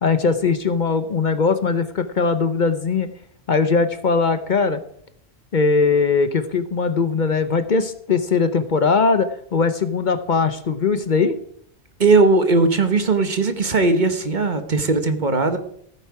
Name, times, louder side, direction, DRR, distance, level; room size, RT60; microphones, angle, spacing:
voice 1, 0.0-3.1 3.5-4.8 5.5-11.3, left 4 dB, 50° left, 10 dB, 0.9 m, -20 dB
voice 2, 12.0-15.6, right 3 dB, 50° right, 8 dB, 1.3 m, -18 dB
15.0 x 8.9 x 4.8 m, 0.67 s
omnidirectional pair, 1.1 m